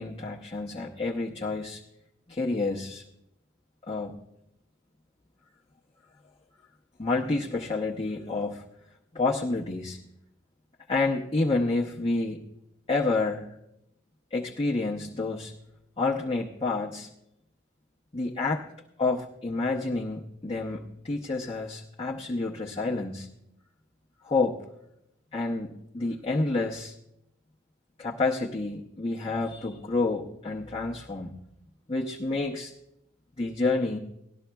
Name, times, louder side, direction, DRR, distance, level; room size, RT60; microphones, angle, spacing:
voice 1, 0.0-1.8 2.3-3.0 3.9-4.2 7.0-8.7 9.1-10.0 10.9-12.4 12.9-13.5 14.3-15.5 16.0-17.1 18.1-18.7 19.0-23.3 24.2-24.6 25.3-26.9 28.0-31.4 31.9-32.7 33.4-34.0, left 3 dB, 30° left, -3 dB, 0.8 m, -29 dB
18.5 x 12.5 x 2.3 m, 0.82 s
head